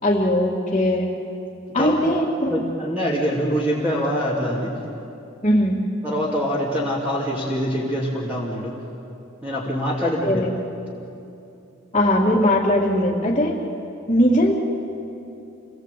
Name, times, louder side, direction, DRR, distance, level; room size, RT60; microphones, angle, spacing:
voice 1, 0.0-1.1 1.7-2.5 5.4-5.8 10.2-10.5 11.9-13.6 14.1-14.5, left 1 dB, 30° left, -7 dB, 2.4 m, -19 dB
voice 2, 2.5-4.7 6.0-8.7 9.4-10.4, equal, 10° right, -6 dB, 2.8 m, -24 dB
28.5 x 20.0 x 8.5 m, 2.7 s
head